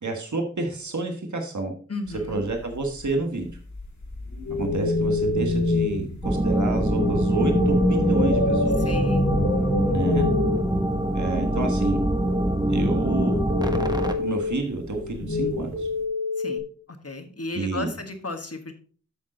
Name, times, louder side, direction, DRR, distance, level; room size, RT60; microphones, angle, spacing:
voice 1, 0.0-1.7 2.3-3.6 4.5-8.8 9.9-10.2 11.1-12.0 12.7-13.4 14.2-15.9 17.5-17.9, right 2 dB, 80° right, 3 dB, 1.4 m, -29 dB
voice 2, 1.9-2.4 8.8-9.3 16.4-16.6 16.9-18.7, left 2 dB, 55° left, 6 dB, 1.5 m, -34 dB
sound 1, 2.1-12.2 12.8-16.0, left 2 dB, 70° left, 2.2 m, -27 dB
sound 2, 6.2-14.1, right 1 dB, 15° right, 1.1 m, -24 dB
Telephone, 10.1-10.6 13.5-14.5 15.7-16.6, left 4 dB, 55° right, 4.6 m, -28 dB
8.4 x 6.5 x 3.9 m, 0.43 s
wide cardioid pair, 50°, 29 cm